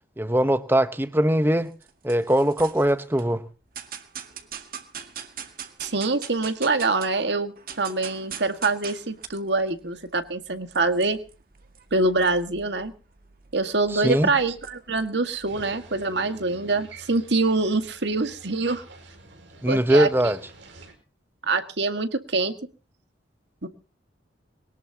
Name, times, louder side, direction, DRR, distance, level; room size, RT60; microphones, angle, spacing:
voice 1, 0.2-1.7 2.0-3.4 13.9-14.3 19.6-20.4, right 1 dB, 10° right, 1.0 m, -21 dB
sound 1, 1.6-3.2 3.7-7.2 7.5-16.0, right 8 dB, 50° right, 1.9 m, -43 dB
voice 2, 5.8-11.2 11.9-12.9 13.5-18.9 19.7-20.3 21.5-22.5 23.6-23.7, right 3 dB, 70° right, 1.9 m, -25 dB
sound 2, 15.5-20.9, right 2 dB, 85° right, 5.3 m, -48 dB
22.5 x 18.5 x 2.9 m
head